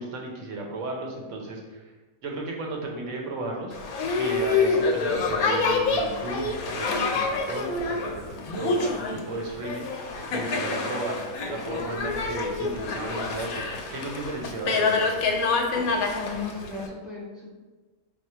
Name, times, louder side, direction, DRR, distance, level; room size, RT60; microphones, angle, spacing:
voice 1, 0.0-1.9 2.2-7.2 7.5-15.1, right 2 dB, 65° right, -1 dB, 1.1 m, -34 dB
Boat Water vehicle, 3.7-16.9, left 4 dB, 85° left, 1.0 m, -27 dB
voice 2, 16.1-17.5, left 4 dB, ahead, -6 dB, 0.7 m, -35 dB
4.2 x 2.1 x 4.4 m, 1.2 s
omnidirectional pair, 1.5 m